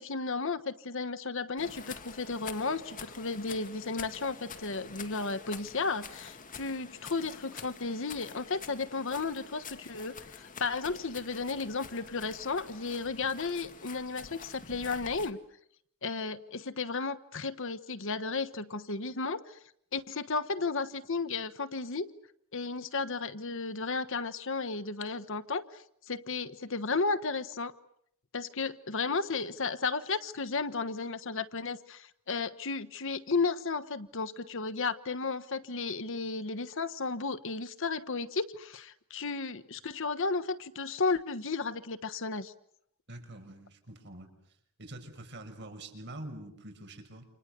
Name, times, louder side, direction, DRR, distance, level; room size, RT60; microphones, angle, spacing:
voice 1, 0.0-15.4 16.0-19.6 19.9-22.1 22.5-27.7 28.3-42.5, left 4 dB, 65° left, 12 dB, 1.3 m, -34 dB
sound 1, 1.6-15.3, left 5 dB, 40° left, 2.2 m, -47 dB
voice 2, 43.1-44.3 44.8-47.3, right 1 dB, 55° right, 6 dB, 6.1 m, -45 dB
29.5 x 27.5 x 6.9 m, 0.72 s
head